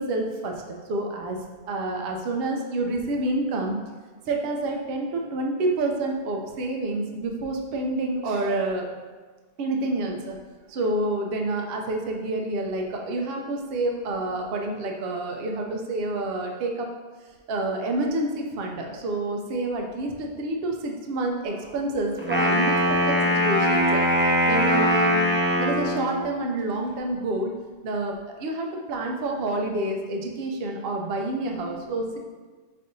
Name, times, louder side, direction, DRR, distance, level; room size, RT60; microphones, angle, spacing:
voice 1, 0.0-1.4 1.7-3.8 4.3-8.9 9.6-10.4 10.7-16.9 17.5-22.8 23.1-24.0 24.4-25.3 25.6-27.5 27.8-32.2, right 2 dB, 70° right, 1 dB, 0.8 m, -28 dB
Wind instrument woodwind instrument, 22.2-26.2, equal, 15° right, 0.5 m, -21 dB
5.1 x 3.3 x 2.6 m, 1.4 s
omnidirectional pair, 1.0 m